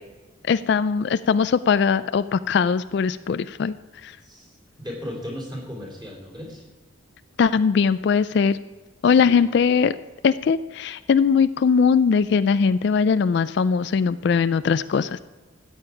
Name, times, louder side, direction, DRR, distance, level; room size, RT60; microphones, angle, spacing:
voice 1, 0.5-3.7 4.0-4.1 7.4-8.6 9.0-9.9 10.2-15.2, left 6 dB, 55° left, 14 dB, 0.3 m, -20 dB
voice 2, 4.2-6.6 9.0-9.4, left 1 dB, 20° right, -2 dB, 3.1 m, -36 dB
13.5 x 8.9 x 4.8 m, 1.3 s
head